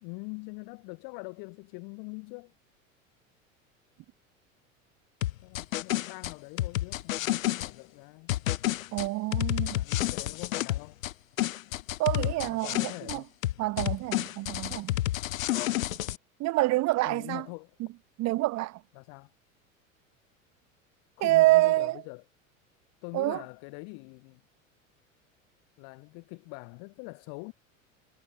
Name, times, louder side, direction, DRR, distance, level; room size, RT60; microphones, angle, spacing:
voice 1, 0.0-2.5 5.4-8.3 9.6-11.0 12.5-13.3 15.2-15.5 17.0-17.7 18.9-19.3 21.2-22.2 23.0-24.4 25.8-27.5, left 36 dB, 55° left, 2.4 m, -43 dB
sound 1, 5.2-7.7 8.3-11.1 11.4-13.2 13.4-16.2, left 14 dB, 75° left, 0.6 m, -29 dB
voice 2, 8.9-9.8 12.0-13.2 13.6-14.9 16.4-17.4 18.2-18.8 21.2-22.0 23.1-23.4, right 19 dB, 40° right, 1.1 m, -26 dB
figure-of-eight pair, 75°, 40 cm